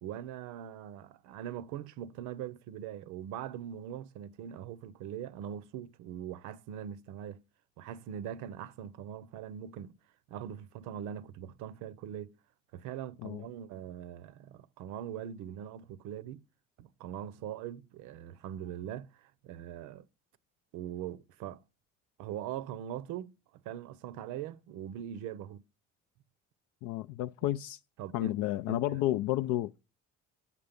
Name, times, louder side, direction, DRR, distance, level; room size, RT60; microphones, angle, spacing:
voice 1, 0.0-7.4 7.8-10.0 10.3-12.3 12.7-16.4 16.8-20.1 20.7-21.6 22.2-23.3 23.6-25.6 27.4-27.5 28.0-28.3 28.7-29.0, right 10 dB, 85° right, 0.6 m, -41 dB
voice 2, 26.8-27.8 28.1-29.7, left 15 dB, 80° left, 0.4 m, -31 dB
8.4 x 5.8 x 5.1 m
supercardioid pair, 85°, 30 cm